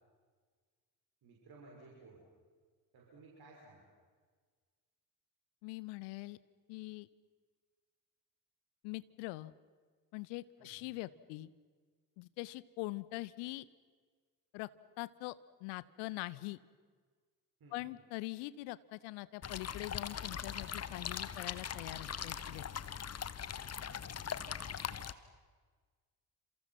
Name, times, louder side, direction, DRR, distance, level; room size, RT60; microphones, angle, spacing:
voice 1, 1.2-2.2 2.9-3.9 10.6-11.0 17.6-17.9 23.9-24.5, right 3 dB, 50° right, -3 dB, 6.4 m, -58 dB
voice 2, 5.6-6.4 6.7-7.1 8.8-9.5 10.1-11.5 12.2-13.6 14.5-14.7 15.0-15.3 15.6-16.6 17.7-22.6, left 20 dB, 60° left, 18 dB, 1.0 m, -43 dB
sound 1, 19.4-25.1, left 8 dB, 30° left, 1.3 m, -41 dB
29.5 x 28.0 x 6.0 m, 1.5 s
figure-of-eight pair, 45°, 47 cm